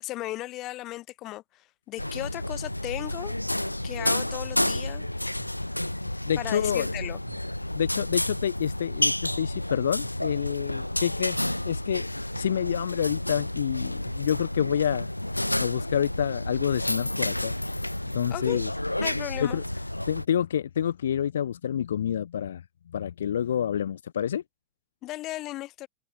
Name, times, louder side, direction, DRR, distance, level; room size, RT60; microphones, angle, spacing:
voice 1, 0.0-3.3 3.8-5.1 6.4-7.2 18.3-18.6 19.0-19.6 25.0-25.9, left 17 dB, 35° left, 0.7 m, -36 dB
sound 1, 2.0-20.2, left 1 dB, 85° left, 1.1 m, -30 dB
sound 2, 5.0-5.5 6.0-6.4 7.0-7.4 8.0-8.4 9.0-9.4 10.0-10.4 11.1-11.4 12.1-12.4 13.1-13.4 14.0-14.4, right 18 dB, 50° right, 7.6 m, -49 dB
voice 2, 6.3-6.9 7.8-11.4 11.7-12.1 12.4-15.1 15.6-17.5 18.1-18.7 19.4-19.6 20.1-22.6 22.9-24.4, left 9 dB, 65° left, 0.5 m, -28 dB
figure-of-eight pair, 90°, 0 cm